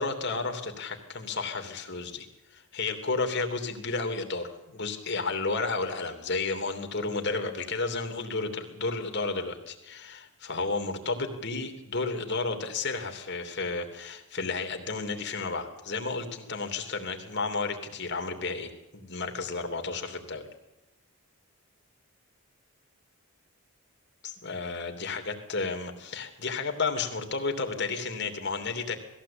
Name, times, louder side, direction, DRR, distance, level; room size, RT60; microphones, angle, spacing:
voice 1, 0.0-2.3 2.5-20.4 24.2-29.0, left 3 dB, 50° left, 5 dB, 3.0 m, -32 dB
20.5 x 15.5 x 8.7 m, 0.93 s
head